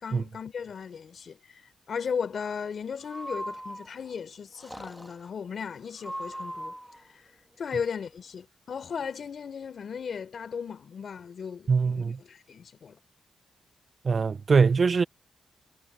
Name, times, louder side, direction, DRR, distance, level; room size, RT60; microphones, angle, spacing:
voice 1, 0.0-1.4 1.9-6.8 7.6-13.0, left 6 dB, 60° left, 3.6 m, -36 dB
Breathing, 3.0-4.1 4.6-5.3 6.0-7.0, equal, 5° right, 1.4 m, -39 dB
voice 2, 11.7-12.2 14.0-15.0, right 5 dB, 45° right, 0.4 m, -22 dB
cardioid pair, 90°, 0 cm